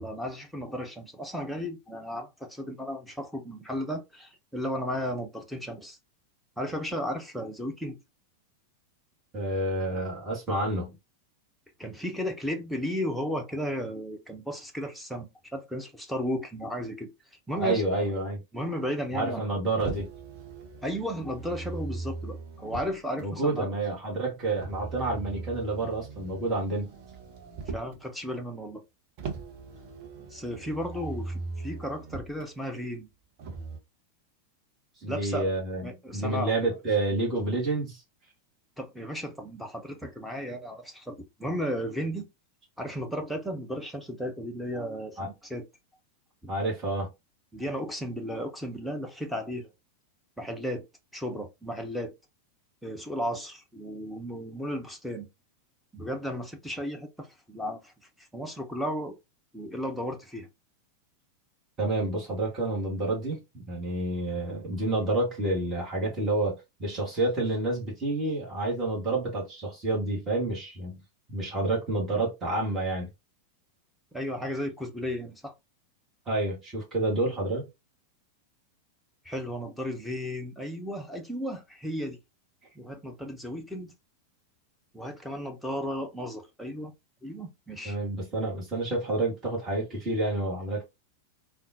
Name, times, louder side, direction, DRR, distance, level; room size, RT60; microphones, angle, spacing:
voice 1, 0.0-6.0 6.6-8.0 11.8-17.1 17.5-18.1 18.5-19.6 20.8-23.7 27.7-28.8 30.2-33.1 35.1-35.5 35.8-36.6 38.8-42.3 42.8-45.7 46.4-46.5 47.5-49.7 50.4-50.8 51.1-52.1 52.8-55.3 55.9-57.9 58.2-59.1 59.5-60.5 74.1-75.5 79.2-82.2 82.8-83.9 84.9-86.9 87.2-88.0, equal, ahead, 0.7 m, -34 dB
voice 2, 9.3-10.9 17.6-18.4 19.1-20.1 23.2-26.9 35.0-38.0 45.2-45.3 46.5-47.1 61.8-71.0 71.3-73.1 76.3-77.7 87.8-90.8, right 2 dB, 25° right, 1.4 m, -29 dB
Motor vehicle (road), 19.8-23.2 24.5-28.0 29.2-32.4 33.4-33.8, right 4 dB, 45° right, 0.8 m, -39 dB
3.7 x 2.2 x 2.6 m
figure-of-eight pair, 90°, 0 cm